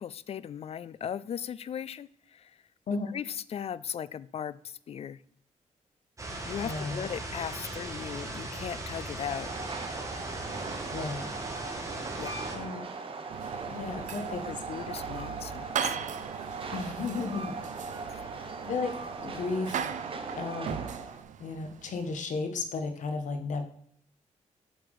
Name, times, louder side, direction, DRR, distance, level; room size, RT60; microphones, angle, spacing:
voice 1, 0.0-2.5 3.1-5.2 6.4-9.5 12.2-12.4 13.9-16.0 18.1-18.3, left 8 dB, 50° left, 18 dB, 0.4 m, -38 dB
sound 1, 6.2-12.6, right 2 dB, 25° right, 1.9 m, -38 dB
voice 2, 6.6-7.0 10.9-11.3 12.5-12.8 13.7-14.4 16.7-17.6 18.1-19.9 20.4-20.8 21.4-23.6, left 4 dB, 75° left, 7 dB, 1.4 m, -34 dB
Train, 9.3-21.2, right 4 dB, 45° right, 1.2 m, -39 dB
sound 2, 13.3-22.2, right 8 dB, 75° right, 0.6 m, -39 dB
8.1 x 6.0 x 4.9 m, 0.64 s
cardioid pair, 110°, 13 cm